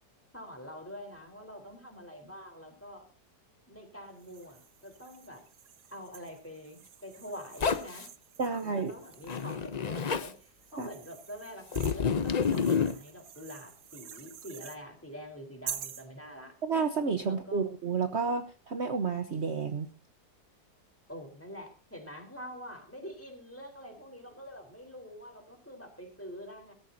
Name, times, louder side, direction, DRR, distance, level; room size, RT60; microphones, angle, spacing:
voice 1, 0.3-3.0 3.7-5.4 5.9-8.1 8.4-16.5 17.2-17.6 21.1-26.7, equal, 10° left, 3 dB, 4.0 m, -46 dB
sound 1, 4.1-9.7 10.3-14.8 15.7-16.1, right 9 dB, 75° right, 1.6 m, -47 dB
Zipper (clothing), 7.6-8.1 9.2-10.3 11.7-13.0, left 6 dB, 45° left, 0.5 m, -29 dB
voice 2, 8.4-8.9 10.8-10.9 16.6-19.9, right 5 dB, 45° right, 7 dB, 1.3 m, -30 dB
22.5 x 14.0 x 2.8 m, 0.32 s
omnidirectional pair, 1.8 m